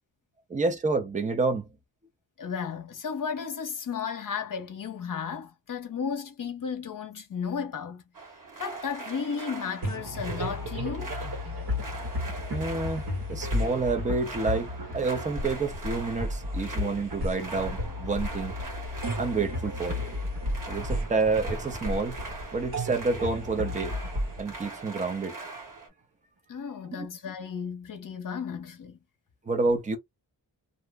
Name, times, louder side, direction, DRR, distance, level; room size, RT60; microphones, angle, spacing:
voice 1, 0.5-1.6 12.5-13.0 13.3-18.5 19.2-19.9 20.7-22.1 22.5-23.9 24.4-25.4 26.9-27.1 29.5-30.0, right 3 dB, 20° right, 0.5 m, -28 dB
voice 2, 2.4-8.0 8.6-11.1 26.5-29.0, left 6 dB, 55° left, 0.8 m, -34 dB
sound 1, 8.1-25.9, right 3 dB, 55° right, 1.6 m, -42 dB
sound 2, 9.8-25.5, left 1 dB, 70° right, 1.4 m, -33 dB
2.6 x 2.0 x 3.3 m
wide cardioid pair, 175°, 39 cm